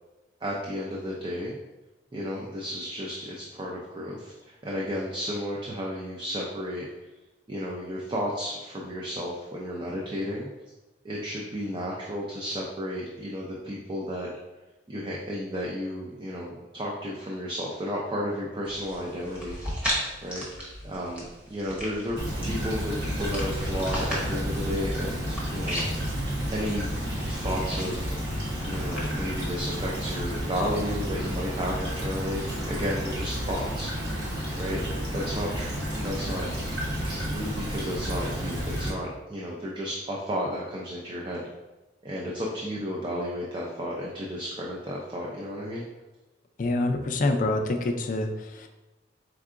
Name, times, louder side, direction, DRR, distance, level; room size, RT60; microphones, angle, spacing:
voice 1, 0.4-1.6 2.1-6.9 7.5-10.5 11.0-14.3 14.9-19.6 20.2-26.1 26.5-26.9 27.2-34.2 34.6-34.8 35.1-36.5 37.0-41.4 42.0-45.9, equal, 25° right, -3 dB, 0.4 m, -33 dB
sound 1, 18.6-30.1, equal, 5° right, 0.9 m, -37 dB
Stream / Trickle dribble, 22.2-38.9, equal, 65° right, 0.9 m, -31 dB
voice 2, 46.6-48.7, left 2 dB, 45° left, 4 dB, 0.4 m, -26 dB
4.5 x 3.6 x 2.4 m, 1.1 s
head